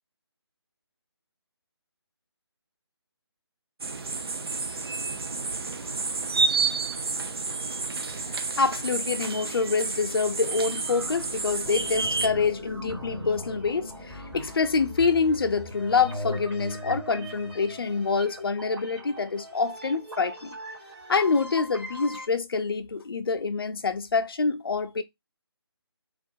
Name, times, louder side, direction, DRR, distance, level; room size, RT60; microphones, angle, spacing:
sound 1, 3.8-12.3, right 4 dB, 65° right, 0.4 m, -30 dB
voice 1, 8.2-20.6 21.1-25.0, left 4 dB, 60° left, 0.4 m, -26 dB
sound 2, 10.4-22.3, equal, 5° right, 0.5 m, -39 dB
2.3 x 2.0 x 2.6 m
figure-of-eight pair, 150°, 14 cm